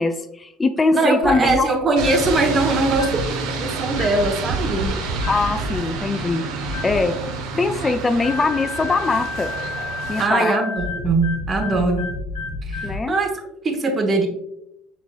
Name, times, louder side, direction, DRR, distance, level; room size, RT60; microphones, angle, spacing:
voice 1, 0.0-1.7 5.3-7.2 7.5-9.5 10.1-10.6 12.8-13.2, left 3 dB, 25° left, 8 dB, 0.3 m, -22 dB
voice 2, 0.9-5.0 10.2-12.1 12.6-14.3, right 3 dB, 35° right, 4 dB, 1.0 m, -21 dB
sound 1, 1.2-1.6 2.0-2.3 2.9-3.3 3.9-4.3 5.1-5.5 6.6-7.0 8.2-13.0, left 3 dB, 70° left, 1.0 m, -30 dB
sound 2, 2.0-10.3, right 3 dB, 65° right, 0.7 m, -29 dB
5.2 x 4.2 x 2.3 m, 0.82 s
hypercardioid pair, 65°, 0 cm